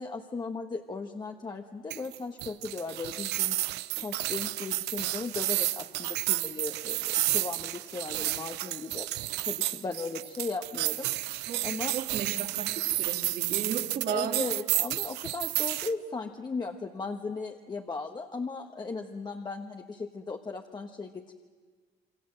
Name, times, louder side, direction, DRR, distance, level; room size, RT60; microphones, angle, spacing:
voice 1, 0.0-9.1 9.4-11.1 11.6-11.9 14.1-21.3, left 4 dB, 25° left, 3 dB, 1.4 m, -37 dB
sound 1, 1.9-15.9, right 16 dB, 80° right, 0.7 m, -31 dB
voice 2, 11.3-14.5, right 8 dB, 60° right, 5 dB, 2.5 m, -35 dB
28.0 x 23.5 x 7.7 m, 1.5 s
cardioid pair, 110°, 17 cm